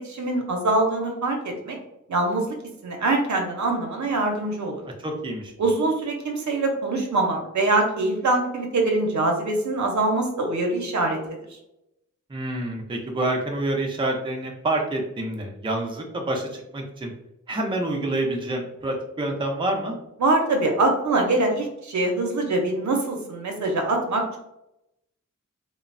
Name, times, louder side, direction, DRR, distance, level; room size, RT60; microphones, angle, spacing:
voice 1, 0.0-1.8 2.1-2.5 2.8-4.7 5.6-11.2 20.2-24.4, right 2 dB, 65° right, 2 dB, 0.6 m, -23 dB
voice 2, 5.0-5.7 12.3-17.1 17.5-19.9, right 1 dB, 15° right, 0 dB, 0.5 m, -27 dB
3.0 x 2.0 x 2.5 m, 0.85 s
wide cardioid pair, 75°, 31 cm